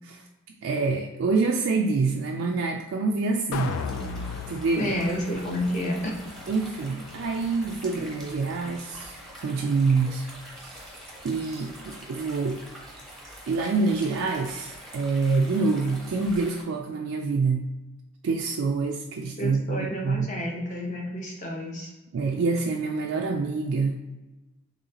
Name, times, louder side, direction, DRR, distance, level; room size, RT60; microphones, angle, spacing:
voice 1, 0.6-3.8 4.5-4.9 6.5-9.1 9.4-10.3 10.6-10.9 11.2-12.6 13.5-17.7 18.2-20.3 22.1-24.0, right 4 dB, 75° right, 1 dB, 0.4 m, -26 dB
sound 1, 3.5-9.7 10.1-10.2, left 5 dB, 85° left, 0.3 m, -38 dB
sound 2, 3.5-16.6, equal, ahead, 0.7 m, -45 dB
voice 2, 4.8-6.2 19.4-21.9, equal, 35° left, 0 dB, 0.8 m, -30 dB
3.9 x 3.2 x 2.8 m, 1.1 s
head